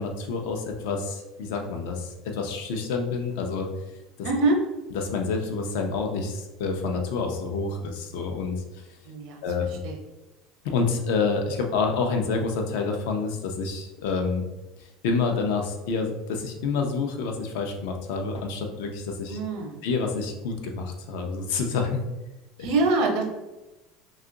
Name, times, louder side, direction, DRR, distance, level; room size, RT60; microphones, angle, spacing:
voice 1, 0.0-3.7 4.9-8.6 9.4-9.8 10.6-14.4 15.0-19.4 19.8-22.0 22.6-22.7, left 4 dB, 75° left, 3 dB, 0.6 m, -28 dB
voice 2, 4.2-4.6 9.1-9.4 9.8-10.0 19.3-19.8 22.6-23.3, right 2 dB, 65° right, 2 dB, 0.7 m, -24 dB
2.9 x 2.4 x 3.6 m, 1.0 s
cardioid pair, 155°, 0 cm